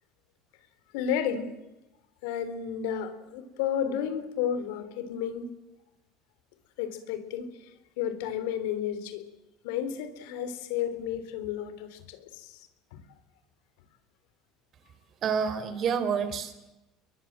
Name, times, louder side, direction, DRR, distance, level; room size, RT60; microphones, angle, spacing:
voice 1, 0.9-1.5 2.2-5.5 6.8-7.7 8.0-9.3 9.6-13.0, left 9 dB, 85° left, 11 dB, 4.0 m, -32 dB
voice 2, 15.2-16.7, right 6 dB, 45° right, 12 dB, 4.0 m, -28 dB
29.0 x 22.5 x 7.6 m, 0.97 s
supercardioid pair, 125°, 0 cm